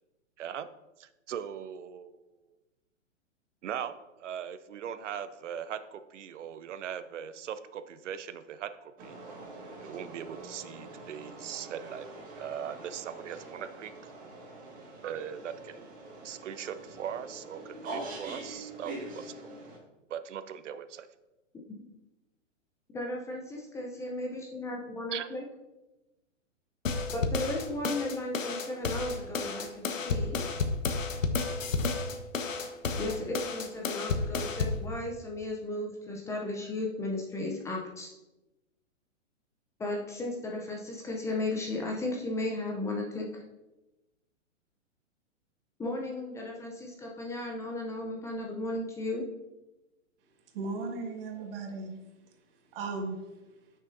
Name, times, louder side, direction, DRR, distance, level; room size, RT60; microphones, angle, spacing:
voice 1, 1.0-2.1 3.6-3.9 4.2-9.2 9.8-12.1 12.4-13.9 15.0-15.8 16.2-19.3 20.1-21.1 25.1-25.3, right 9 dB, 65° right, 12 dB, 0.7 m, -39 dB
sound 1, 9.0-19.8, right 2 dB, 20° right, 1.9 m, -44 dB
voice 2, 22.9-25.4 27.1-30.4 33.0-38.1 39.8-43.4 45.8-49.2, left 2 dB, 10° left, 0 dB, 0.6 m, -35 dB
sound 2, 26.9-34.8, left 4 dB, 80° left, 1.0 m, -31 dB
voice 3, 50.5-52.0 52.7-53.3, right 3 dB, 45° right, 3 dB, 1.7 m, -36 dB
9.5 x 6.5 x 2.7 m, 1.0 s
hypercardioid pair, 130°, 39 cm